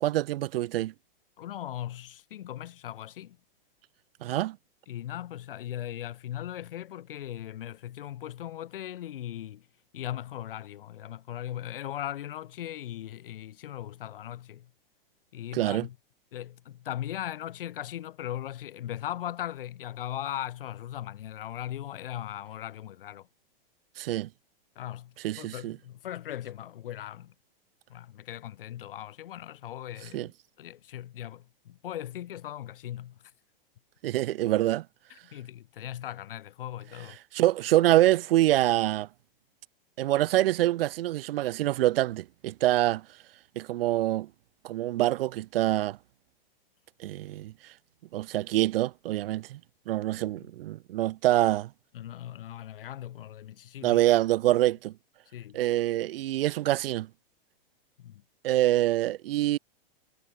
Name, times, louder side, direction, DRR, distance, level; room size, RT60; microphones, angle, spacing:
voice 1, 0.0-0.9 4.2-4.6 15.5-15.9 24.0-24.3 25.2-25.8 30.1-30.3 34.0-34.8 37.3-39.1 40.0-43.0 43.6-44.3 44.6-46.0 47.0-47.5 48.1-49.6 49.9-51.7 53.8-54.9 55.5-57.1 58.4-59.6, right 15 dB, 75° right, 0.5 m, -25 dB
voice 2, 1.4-3.4 4.9-9.7 9.9-14.7 15.3-16.0 16.3-23.3 24.8-27.3 27.9-30.3 30.6-33.2 35.1-37.2 50.2-50.4 51.9-54.0 55.3-55.6 58.0-58.2, left 12 dB, 70° left, 5.8 m, -39 dB
supercardioid pair, 165°, 29 cm